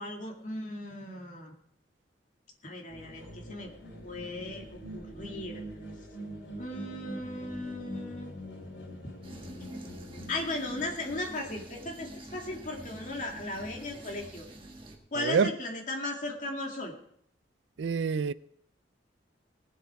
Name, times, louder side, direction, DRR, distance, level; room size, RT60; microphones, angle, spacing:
voice 1, 0.0-1.5 2.6-3.7 4.0-5.6 6.6-8.3 10.3-14.5 15.1-16.9, left 2 dB, 45° left, 2.2 m, -37 dB
sound 1, 2.9-10.3, equal, 85° left, 3.3 m, -43 dB
sound 2, 9.2-15.0, right 1 dB, 30° right, 1.6 m, -46 dB
voice 2, 15.2-15.5 17.8-18.3, right 5 dB, 75° right, 0.4 m, -26 dB
18.5 x 8.0 x 4.7 m
head